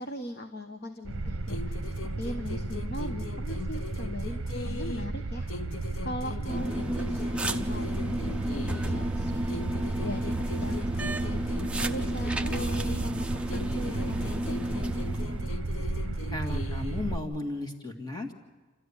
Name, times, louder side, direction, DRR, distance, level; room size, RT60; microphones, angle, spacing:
voice 1, 0.0-1.8 2.2-14.8, left 1 dB, 50° left, 6 dB, 1.1 m, -40 dB
sound 1, 1.0-17.2, right 2 dB, 60° right, 0.9 m, -33 dB
sound 2, 1.5-5.2 5.5-9.1 9.5-13.2 13.5-17.1, left 4 dB, 70° left, 0.8 m, -41 dB
sound 3, 6.5-15.6, right 1 dB, 5° right, 0.6 m, -33 dB
voice 2, 16.3-18.3, left 2 dB, 20° left, 4 dB, 1.9 m, -35 dB
28.0 x 13.5 x 9.8 m, 1.3 s
head